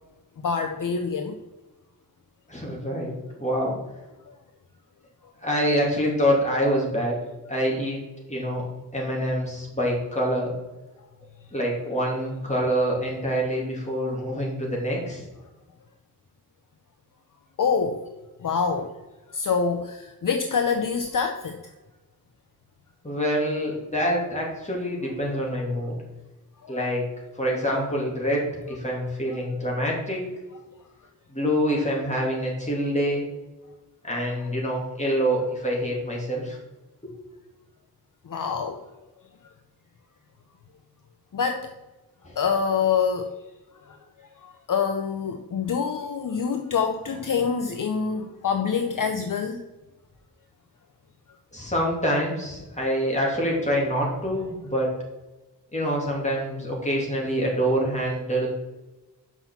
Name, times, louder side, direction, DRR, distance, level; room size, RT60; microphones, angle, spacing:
voice 1, 0.4-1.4 4.3-4.4 17.6-18.0 18.4-18.9 19.3-21.6 26.6-26.8 38.3-38.8 41.3-41.7 42.4-43.3 44.4-49.6, left 6 dB, 55° left, 6 dB, 0.7 m, -26 dB
voice 2, 2.5-3.1 3.4-3.8 5.4-7.2 7.5-8.0 8.3-8.6 8.9-10.5 11.5-15.2 23.0-25.9 26.7-27.0 27.4-30.2 31.3-33.2 34.0-36.6 42.2-42.4 51.5-54.9 55.7-58.5, equal, 20° left, -3 dB, 2.8 m, -26 dB
6.0 x 5.8 x 7.1 m, 1.1 s
wide cardioid pair, 115°, 39 cm